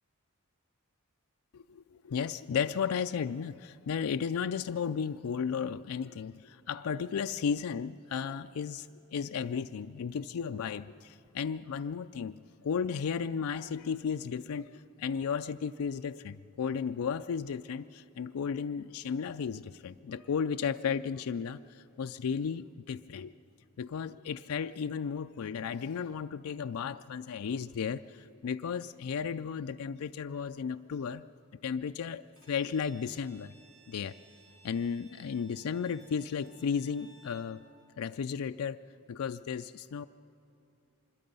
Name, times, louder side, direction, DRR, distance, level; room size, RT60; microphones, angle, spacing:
voice 1, 1.5-23.3 23.8-31.2 31.6-33.5 33.9-34.2 34.6-37.6 38.0-38.8 39.1-40.0, left 6 dB, 85° left, 8 dB, 0.4 m, -34 dB
Bowed string instrument, 32.4-37.6, right 3 dB, 70° right, 5.5 m, -60 dB
25.5 x 21.5 x 5.4 m, 2.8 s
head